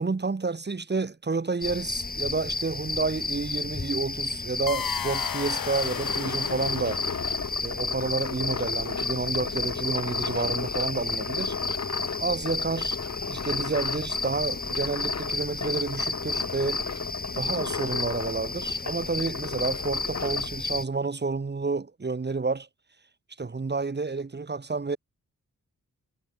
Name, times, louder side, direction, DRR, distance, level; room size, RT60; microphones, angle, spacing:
voice 1, 0.0-7.0 7.6-11.6 12.2-13.0 13.3-16.8 17.3-22.7 23.4-25.0, right 4 dB, 30° right, 2.6 m, -30 dB
sound 1, 1.6-20.8, left 3 dB, 25° left, 4.3 m, -32 dB
sound 2, 4.7-7.8, left 9 dB, 85° left, 2.5 m, -34 dB
sound 3, 5.9-20.5, left 6 dB, 50° left, 3.5 m, -35 dB
wide cardioid pair, 115°, 33 cm